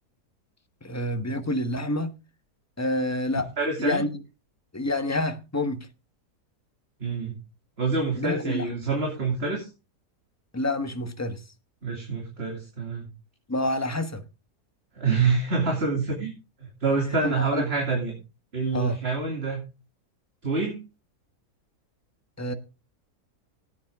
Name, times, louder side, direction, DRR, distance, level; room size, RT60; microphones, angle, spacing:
voice 1, 0.8-2.2 2.8-3.5 3.8-4.2 4.7-5.9 8.2-8.7 10.5-11.4 13.5-14.2 17.2-17.6 18.7-19.0 22.4-22.5, left 1 dB, 10° left, 1.0 m, -28 dB
voice 2, 3.6-4.0 7.0-7.4 7.8-9.7 11.8-13.1 14.9-16.3 16.8-18.2 18.5-19.6 20.4-20.8, right 4 dB, 40° right, 3.0 m, -26 dB
16.5 x 9.2 x 3.6 m
omnidirectional pair, 1.7 m